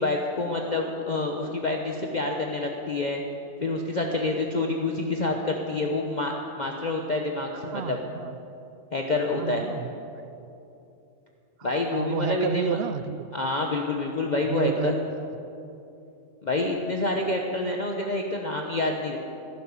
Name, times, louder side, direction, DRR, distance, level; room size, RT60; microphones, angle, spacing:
voice 1, 0.0-3.2 3.6-8.0 8.9-9.7 11.6-12.8 13.3-15.0 16.4-19.2, left 2 dB, 35° left, 1 dB, 1.0 m, -27 dB
voice 2, 7.7-8.4 9.3-9.9 11.6-13.3 14.4-15.3, right 8 dB, 60° right, 13 dB, 0.7 m, -31 dB
16.5 x 10.5 x 6.9 m, 2.8 s
omnidirectional pair, 1.3 m